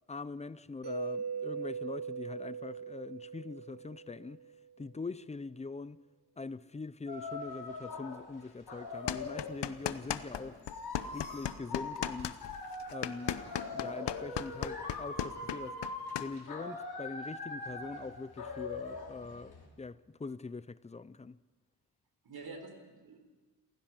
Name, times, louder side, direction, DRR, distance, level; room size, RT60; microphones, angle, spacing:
voice 1, 0.0-4.4 4.8-6.0 6.4-10.6 11.0-12.4 12.9-13.5 13.7-15.8 16.2-21.4, left 4 dB, 15° left, 0.5 m, -43 dB
Mallet percussion, 0.8-4.6, right 5 dB, 85° right, 3.4 m, -40 dB
sound 1, 7.1-9.6 10.2-19.7, left 3 dB, 65° left, 4.7 m, -42 dB
sound 2, 9.1-10.4 10.7-16.3, left 10 dB, 85° left, 0.9 m, -36 dB
voice 2, 10.2-10.5 22.2-23.2, right 3 dB, 60° right, 3.9 m, -48 dB
28.0 x 16.0 x 6.1 m
wide cardioid pair, 100°, 41 cm